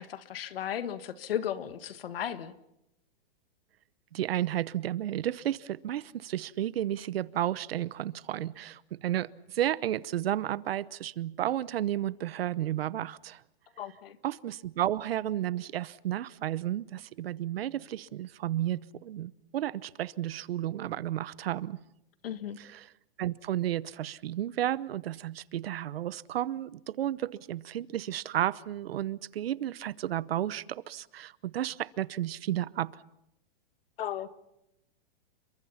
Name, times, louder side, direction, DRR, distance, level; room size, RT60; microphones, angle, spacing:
voice 1, 0.0-2.5 13.8-14.2 22.2-22.6 34.0-34.3, left 10 dB, 70° left, 11 dB, 1.9 m, -35 dB
voice 2, 4.1-13.4 14.2-21.8 22.6-22.9 23.2-33.0, right 12 dB, 80° right, 18 dB, 0.9 m, -32 dB
30.0 x 23.5 x 5.8 m, 0.84 s
supercardioid pair, 175°, 30 cm